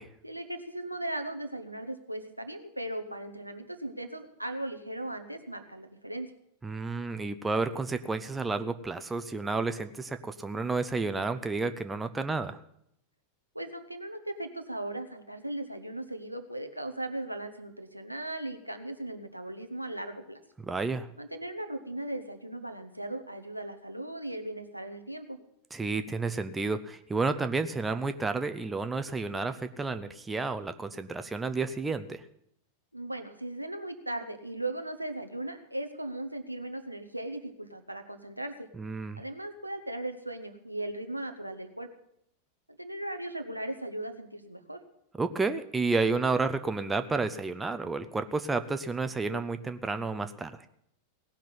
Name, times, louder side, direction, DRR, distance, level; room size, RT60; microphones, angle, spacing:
voice 1, 0.2-6.3 13.5-20.4 21.2-25.4 32.9-38.7 39.1-41.9 42.8-44.8, right 1 dB, 90° right, 6 dB, 1.2 m, -38 dB
voice 2, 6.6-12.6 20.6-21.1 25.7-32.3 38.7-39.2 45.2-50.7, right 3 dB, 10° right, 9 dB, 0.7 m, -31 dB
17.5 x 5.9 x 9.9 m, 0.74 s
figure-of-eight pair, 90°, 0 cm